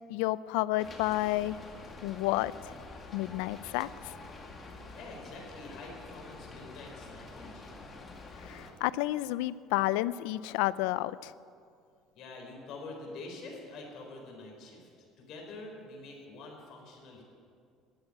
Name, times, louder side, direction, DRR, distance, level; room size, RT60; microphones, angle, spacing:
voice 1, 0.1-1.6 2.0-2.7 3.1-3.9 8.4-11.3, left 17 dB, 90° left, 18 dB, 0.4 m, -30 dB
Rain, 0.8-8.7, left 3 dB, 30° left, 2.1 m, -47 dB
voice 2, 5.0-7.8 12.1-14.9 15.2-17.2, left 2 dB, 60° left, 0 dB, 4.4 m, -46 dB
13.0 x 8.9 x 9.8 m, 2.3 s
cardioid pair, 115°, 0 cm